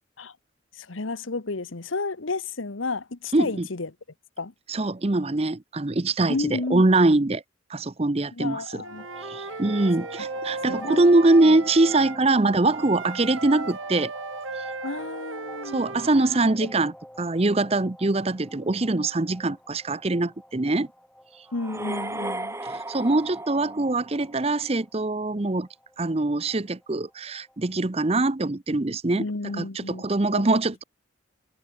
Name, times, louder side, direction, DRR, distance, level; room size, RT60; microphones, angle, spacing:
voice 1, 0.8-3.9 4.4-4.5 6.3-6.8 8.3-9.1 10.7-11.0 11.5-11.6 14.8-15.9 16.6-16.7 21.5-22.6 29.1-30.0 30.3-30.6, left 3 dB, 80° left, 1.2 m, -32 dB
voice 2, 3.3-3.7 4.7-7.4 7.7-8.8 9.2-14.1 14.5-14.6 15.7-20.9 22.6-25.7 26.0-29.3 29.5-30.8, right 2 dB, 30° right, 0.7 m, -23 dB
Wind instrument woodwind instrument, 8.8-12.2 12.7-16.5, right 3 dB, 85° right, 2.8 m, -36 dB
sound 1, 9.0-27.6, equal, 5° left, 5.4 m, -46 dB
sound 2, 21.5-24.5, right 2 dB, 15° right, 3.5 m, -35 dB
head